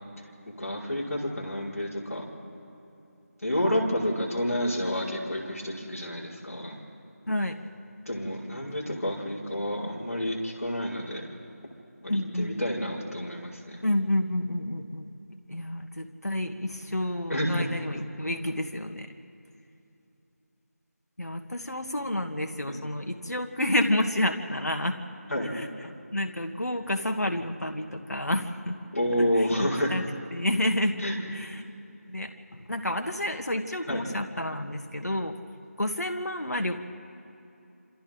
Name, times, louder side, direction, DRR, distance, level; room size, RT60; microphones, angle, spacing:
voice 1, 0.6-2.2 3.4-6.8 8.1-11.3 12.0-13.8 17.3-17.7 22.7-22.8 25.3-25.5 28.9-29.9 31.0-31.2 33.9-34.0, equal, 65° left, -4 dB, 5.4 m, -29 dB
voice 2, 12.1-12.6 13.8-15.1 15.5-19.1 21.2-25.0 25.4-28.8 29.4-30.0 30.3-31.0 31.3-31.6 32.1-35.3 35.8-36.8, left 1 dB, 85° left, 5 dB, 1.7 m, -29 dB
27.5 x 27.0 x 3.9 m, 2.8 s
figure-of-eight pair, 170°, 9 cm